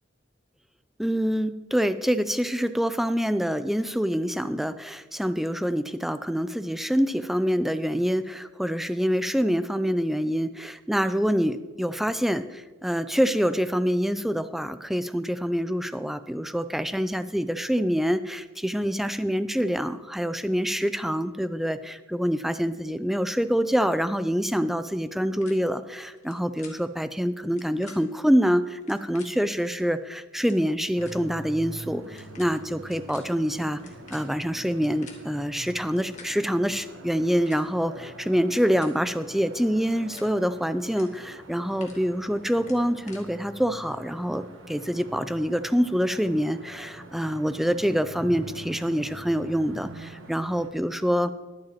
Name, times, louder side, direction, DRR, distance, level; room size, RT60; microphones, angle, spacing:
voice 1, 1.0-33.8 34.1-51.3, equal, ahead, 12 dB, 0.3 m, -26 dB
sound 1, 25.4-25.5 26.2-26.3 26.6-26.7 27.4-28.0 28.8-29.3 30.0-30.1 30.4-30.6 31.0-31.1 32.0-32.5 32.8-33.2 33.7-35.2 35.8-36.3 37.1-37.6 38.4-38.9 39.8-40.3 40.8-41.0 41.4-42.0 42.6-43.2, left 5 dB, 35° left, 1.8 m, -48 dB
sound 2, 31.0-50.7, right 2 dB, 75° right, 1.2 m, -45 dB
21.5 x 7.6 x 3.0 m, 1.3 s
head